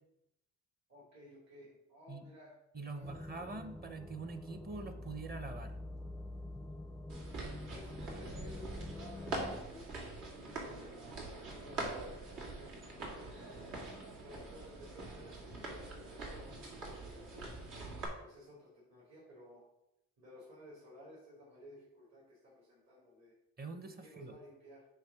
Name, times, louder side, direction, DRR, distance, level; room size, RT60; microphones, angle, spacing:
voice 1, 0.9-2.6 2.9-3.3 7.6-13.3 14.2-17.6 18.2-19.6 20.2-23.3 24.0-24.9, left 1 dB, 60° right, -5 dB, 2.9 m, -56 dB
voice 2, 2.7-5.8 23.6-24.3, right 3 dB, 30° right, 9 dB, 0.9 m, -44 dB
sound 1, 3.0-9.6, left 1 dB, ahead, 0.5 m, -46 dB
sound 2, 7.1-18.1, right 2 dB, 80° right, 2.2 m, -44 dB
8.2 x 3.1 x 6.0 m, 0.84 s
cardioid pair, 90°, 30 cm